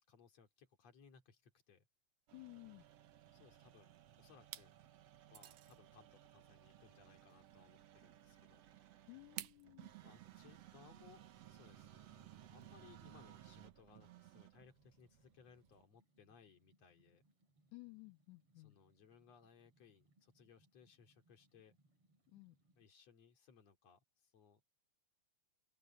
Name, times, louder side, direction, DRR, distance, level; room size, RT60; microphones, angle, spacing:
voice 1, 0.1-1.9 3.3-4.7 5.3-9.1 10.0-17.2 18.6-21.8 22.8-24.6, left 6 dB, 55° left, 3.8 m, -65 dB
voice 2, 2.3-2.9 9.1-9.9 17.7-18.8 22.3-22.6, left 24 dB, 80° left, 2.0 m, -56 dB
sound 1, 2.3-15.8, right 12 dB, 60° right, 2.0 m, -60 dB
sound 2, 3.6-4.0 4.4-4.7 5.3-5.8 7.3-7.4 9.4-9.7, right 13 dB, 85° right, 2.7 m, -50 dB
sound 3, 14.6-22.9, right 2 dB, 45° right, 5.2 m, -77 dB
open air
omnidirectional pair, 3.8 m